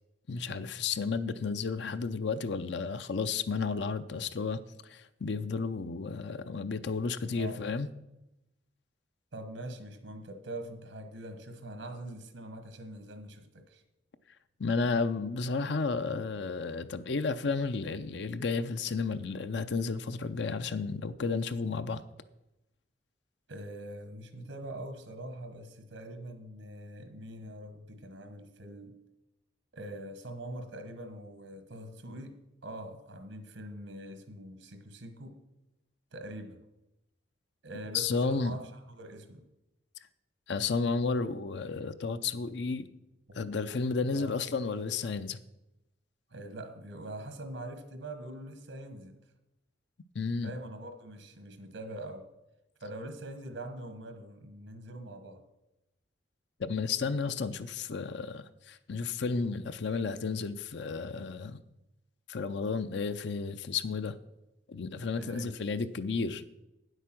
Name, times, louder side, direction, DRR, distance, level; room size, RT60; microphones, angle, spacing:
voice 1, 0.3-7.9 14.6-22.0 37.9-38.6 40.5-42.9 43.3-45.4 50.1-50.5 56.6-61.6 62.3-64.2 64.7-66.4, left 4 dB, 60° left, 0.5 m, -32 dB
voice 2, 7.3-7.6 9.3-13.8 23.5-29.0 29.7-35.4 36.1-36.6 37.6-39.4 43.3-43.4 44.0-44.3 46.3-49.2 50.4-52.3 52.8-55.4 65.2-65.6, right 1 dB, 80° right, 1.2 m, -43 dB
9.5 x 8.1 x 6.0 m
head